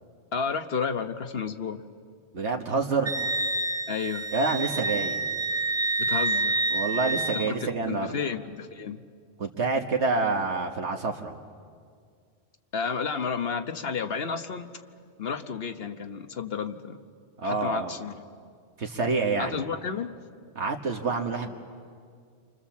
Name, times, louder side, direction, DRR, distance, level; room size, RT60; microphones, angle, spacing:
voice 1, 0.3-1.8 3.9-4.3 6.0-6.6 7.3-9.0 12.7-14.7 15.2-17.0 17.4-18.2 19.4-20.1, left 5 dB, 55° left, 8 dB, 1.3 m, -31 dB
voice 2, 2.3-3.1 4.3-5.2 6.7-8.1 9.4-11.4 17.4-17.9 18.8-19.6 20.5-21.5, right 4 dB, 70° right, 2 dB, 1.7 m, -27 dB
Wind instrument woodwind instrument, 3.0-7.5, right 3 dB, 20° right, 0.4 m, -28 dB
29.5 x 25.5 x 7.3 m, 2.1 s
omnidirectional pair, 1.2 m